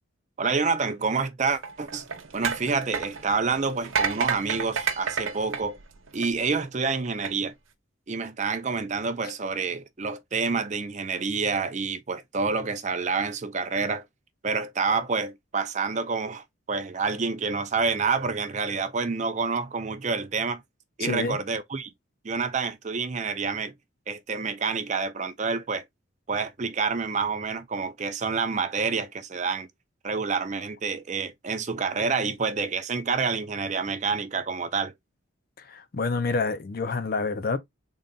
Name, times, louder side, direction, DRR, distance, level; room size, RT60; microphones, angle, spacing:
voice 1, 0.4-2.0 2.3-5.8 6.1-7.5 8.1-14.0 14.4-20.6 21.0-21.9 22.2-23.7 24.1-25.8 26.3-29.7 30.0-34.9, right 4 dB, 35° right, 0.5 m, -28 dB
sound 1, 1.6-6.5 7.1-7.3, right 6 dB, 80° right, 0.7 m, -30 dB
voice 2, 21.0-21.4 35.6-37.6, left 4 dB, 45° left, 0.5 m, -28 dB
3.8 x 2.2 x 3.8 m
head